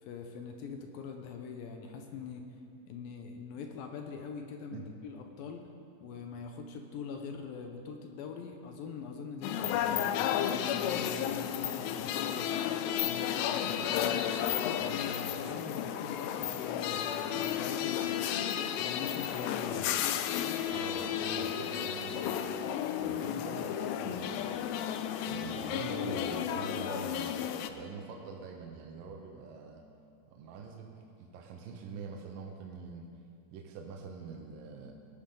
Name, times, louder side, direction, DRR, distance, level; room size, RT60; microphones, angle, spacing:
voice 1, 0.0-2.5 2.9-5.6 6.0-12.5 13.0-14.3 14.8-18.3 18.8-20.0, left 5 dB, 75° left, 4 dB, 2.3 m, -43 dB
sound 1, 9.4-27.7, left 10 dB, 90° left, 2.7 m, -33 dB
voice 2, 20.7-22.4 23.0-24.6 25.2-27.3 27.7-29.8 30.3-33.1 33.5-34.9, right 5 dB, 70° right, 1 dB, 2.3 m, -44 dB
19.0 x 11.5 x 3.8 m, 2.6 s
omnidirectional pair, 4.8 m